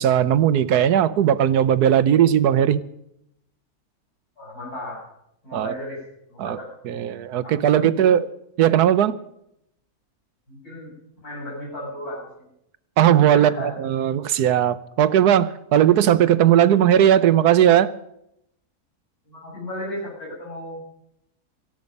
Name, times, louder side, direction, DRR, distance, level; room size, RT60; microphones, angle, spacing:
voice 1, 0.0-2.8 5.5-5.7 6.4-6.6 6.9-8.3 8.6-9.1 13.0-17.9, right 10 dB, 90° right, 15 dB, 1.3 m, -18 dB
voice 2, 4.4-5.0 5.4-6.0 6.3-6.8 7.4-8.1 10.5-10.9 11.2-12.5 13.3-13.7 19.2-20.8, left 1 dB, 75° left, -4 dB, 8.3 m, -34 dB
18.0 x 14.5 x 5.4 m, 0.78 s
omnidirectional pair, 1.6 m